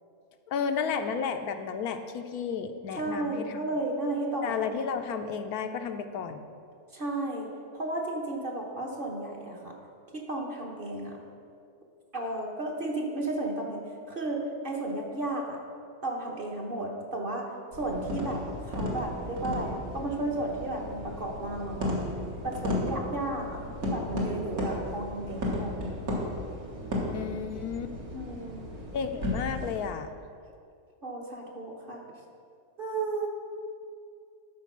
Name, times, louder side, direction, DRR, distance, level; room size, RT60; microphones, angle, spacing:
voice 1, 0.5-3.6 4.4-6.4 27.1-27.9 28.9-30.1, left 6 dB, 75° left, 7 dB, 1.1 m, -32 dB
voice 2, 2.9-4.6 6.9-9.7 10.1-11.2 12.1-15.6 16.0-17.5 17.8-22.1 22.4-25.7 28.1-28.8 31.0-32.0 32.8-33.3, right 2 dB, 40° right, -1 dB, 1.1 m, -33 dB
sound 1, 17.7-29.8, left 1 dB, 65° right, 2.1 m, -34 dB
12.5 x 4.7 x 6.0 m, 2.4 s
omnidirectional pair, 1.6 m